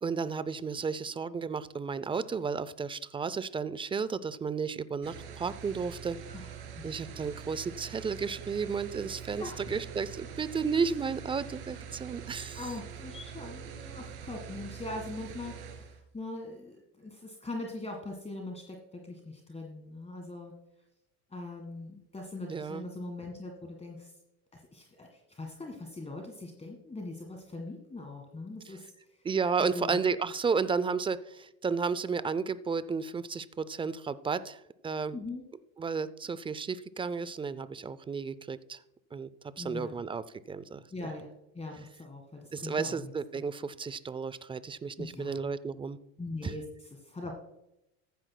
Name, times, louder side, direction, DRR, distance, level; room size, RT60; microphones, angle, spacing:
voice 1, 0.0-6.2 6.8-12.6 22.5-22.8 29.2-35.2 35.8-38.8 39.1-39.3 39.6-40.8 42.5-46.0 46.4-46.5, right 5 dB, 15° right, 16 dB, 0.4 m, -33 dB
sound 1, 5.0-16.0, right 8 dB, 85° right, 2.3 m, -44 dB
voice 2, 6.3-7.2 9.4-9.7 12.5-20.6 21.3-24.1 24.5-29.3 29.6-30.0 35.1-35.4 39.6-40.0 40.9-43.4 45.0-45.6 46.2-47.3, left 2 dB, 15° left, 2 dB, 1.7 m, -42 dB
14.5 x 10.0 x 2.2 m, 0.85 s
hypercardioid pair, 90°, 44 cm